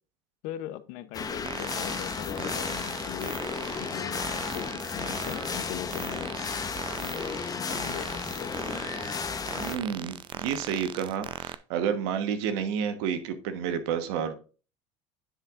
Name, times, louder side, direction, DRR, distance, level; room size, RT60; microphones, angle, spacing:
voice 1, 0.4-3.4 3.8-6.3 7.0-8.5, left 12 dB, 70° left, 13 dB, 0.7 m, -40 dB
sound 1, 1.1-9.8, left 5 dB, 25° left, 0.9 m, -34 dB
sound 2, 1.4-11.6, right 8 dB, 35° right, 0.5 m, -39 dB
voice 2, 9.6-14.3, right 7 dB, 80° right, 9 dB, 1.2 m, -30 dB
9.9 x 7.2 x 2.5 m, 0.36 s
supercardioid pair, 100°, 14 cm